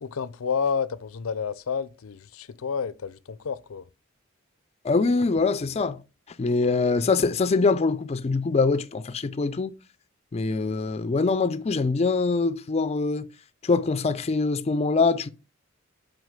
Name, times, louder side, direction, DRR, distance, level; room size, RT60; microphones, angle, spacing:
voice 1, 0.0-3.9, left 6 dB, 85° left, 0.5 m, -30 dB
voice 2, 4.8-6.0 6.4-9.7 10.3-13.3 13.6-15.3, left 4 dB, 30° left, 0.4 m, -24 dB
6.3 x 5.1 x 5.1 m
head